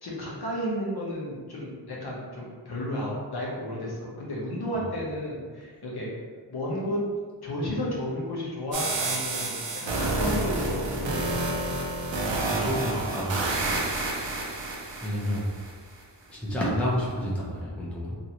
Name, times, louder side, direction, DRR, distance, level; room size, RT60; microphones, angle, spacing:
voice 1, 0.0-6.1 6.5-7.0 7.4-11.4, equal, 60° left, -5 dB, 0.9 m, -32 dB
sound 1, 8.7-15.7, right 2 dB, 85° right, 0.6 m, -29 dB
voice 2, 12.5-13.8 15.0-15.5 16.3-18.2, equal, 5° left, -6 dB, 0.7 m, -30 dB
2.9 x 2.6 x 2.9 m, 1.5 s
wide cardioid pair, 85°, 44 cm